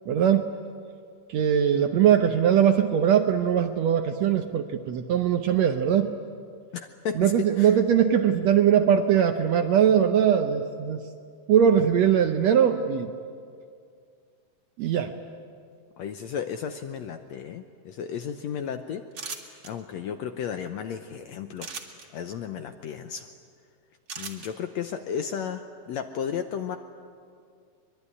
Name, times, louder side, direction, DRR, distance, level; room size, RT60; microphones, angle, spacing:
voice 1, 0.1-0.5 1.3-6.1 7.2-11.0 11.5-13.1 14.8-15.1, right 9 dB, 70° right, 7 dB, 1.7 m, -21 dB
voice 2, 6.7-7.7 16.0-19.0 19.6-21.7 22.1-23.3 24.2-26.8, left 7 dB, 75° left, 8 dB, 1.7 m, -33 dB
sound 1, 19.1-19.7 21.6-22.1 24.1-24.5, right 5 dB, 40° right, 2.3 m, -37 dB
24.0 x 22.0 x 9.8 m, 2.2 s
omnidirectional pair, 3.9 m